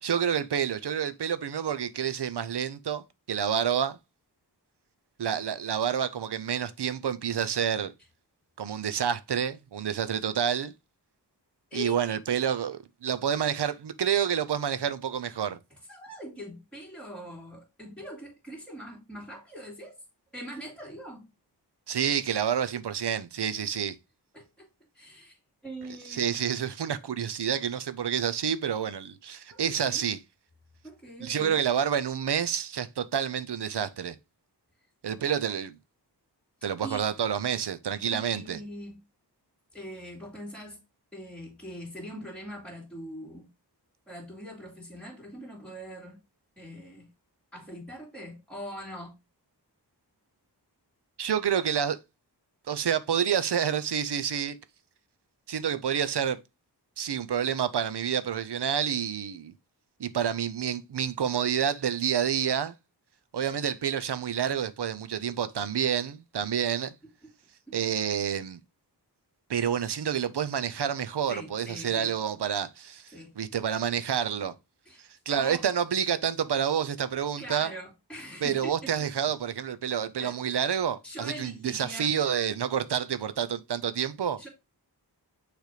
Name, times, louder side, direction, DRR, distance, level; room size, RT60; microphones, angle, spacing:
voice 1, 0.0-4.0 5.2-7.9 8.6-10.7 11.7-15.6 21.9-24.0 26.1-30.2 31.2-34.2 35.0-35.7 36.6-38.6 51.2-52.0 52.7-54.6 55.5-56.4 57.0-59.5 60.0-62.8 63.3-66.9 67.7-68.6 69.5-74.5 75.0-77.7 78.4-84.4, right 8 dB, 70° right, 0.7 m, -28 dB
voice 2, 11.7-12.1 15.7-20.0 20.3-21.2 24.3-24.7 24.9-25.4 25.6-26.4 29.5-30.0 30.8-31.6 36.8-37.1 38.0-39.0 39.7-40.8 41.1-43.5 44.1-46.2 46.6-47.1 47.5-49.1 67.7-67.8 71.3-72.1 73.1-73.4 74.9-75.6 77.4-79.1 80.2-80.4 81.0-82.1 84.4-84.5, equal, 5° left, 2.4 m, -42 dB
6.5 x 3.4 x 4.9 m
wide cardioid pair, 90°, 41 cm